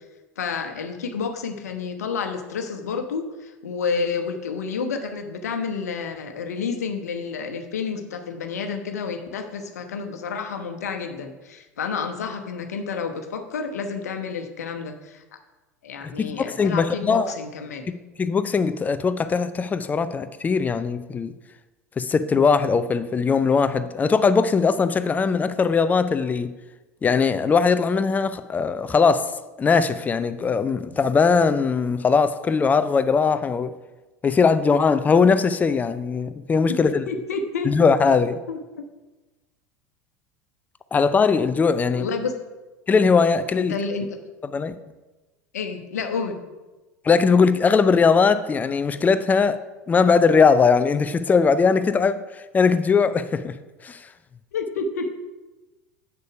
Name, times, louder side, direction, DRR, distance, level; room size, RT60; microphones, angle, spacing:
voice 1, 0.4-15.2 15.8-17.8 36.7-36.8 37.1-37.7 38.5-38.8 42.0-42.3 43.7-44.2 45.5-46.4 54.5-55.1, left 5 dB, 70° left, 1.0 m, -30 dB
voice 2, 16.0-17.3 18.2-21.3 22.0-26.5 27.0-29.3 29.6-33.7 34.2-37.0 37.6-38.4 40.9-42.0 42.9-43.7 44.5-44.7 47.0-49.6 49.9-52.2 52.5-53.5 53.8-54.0, left 5 dB, 20° left, 0.5 m, -20 dB
8.2 x 6.6 x 4.8 m
figure-of-eight pair, 80°, 9 cm